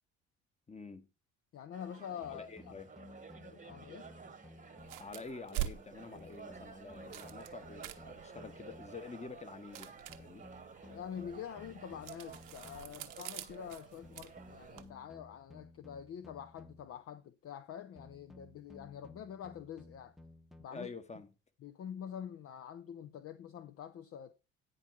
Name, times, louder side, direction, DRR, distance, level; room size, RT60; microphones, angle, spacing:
voice 1, 0.7-1.1 2.3-2.9 5.0-10.5 20.7-21.3, left 4 dB, 20° left, 1.4 m, -48 dB
voice 2, 1.5-2.7 3.4-4.1 10.8-20.2 20.6-20.9 21.6-24.3, left 9 dB, 40° left, 0.7 m, -46 dB
sound 1, 1.7-14.8, right 5 dB, 20° right, 1.2 m, -53 dB
sound 2, 2.2-5.2 6.1-9.2 10.1-13.1 14.0-17.0 18.0-20.7, left 2 dB, ahead, 1.0 m, -57 dB
sound 3, 4.8-14.9, right 14 dB, 65° right, 0.9 m, -46 dB
9.9 x 4.6 x 5.9 m
hypercardioid pair, 55°, 36 cm